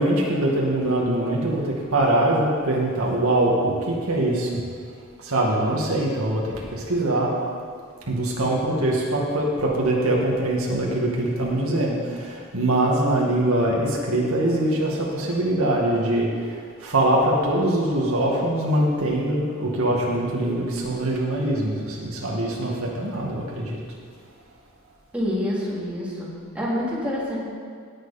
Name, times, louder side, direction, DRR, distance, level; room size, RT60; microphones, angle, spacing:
voice 1, 0.0-4.6 5.2-7.4 8.1-23.8, right 1 dB, 80° right, -3 dB, 2.2 m, -23 dB
voice 2, 25.1-27.4, left 1 dB, 5° right, -7 dB, 2.8 m, -27 dB
17.5 x 7.9 x 4.3 m, 2.2 s
head